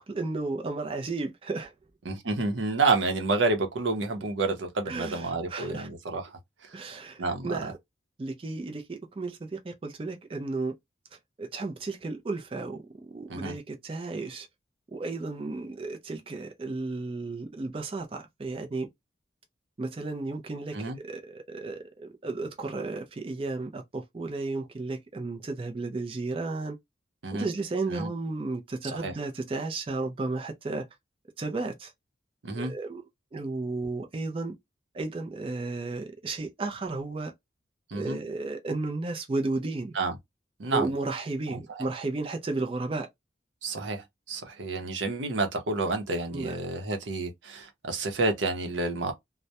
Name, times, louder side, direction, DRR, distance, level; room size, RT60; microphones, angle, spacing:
voice 1, 0.0-1.7 4.9-5.9 6.7-7.7 8.2-10.7 11.4-14.5 14.9-18.9 19.8-26.8 27.3-30.9 31.4-31.9 32.5-33.0 33.3-34.6 34.9-37.3 37.9-39.9 40.7-43.1 46.3-46.6, right 3 dB, 30° right, 0.4 m, -33 dB
voice 2, 2.1-6.4 7.2-7.7 13.3-13.5 20.7-21.0 27.2-27.5 27.9-28.1 28.8-29.1 32.4-32.7 37.9-38.2 39.9-40.1 40.6-40.9 41.5-41.9 43.6-49.1, right 3 dB, 85° right, 0.6 m, -29 dB
2.2 x 2.0 x 2.7 m
head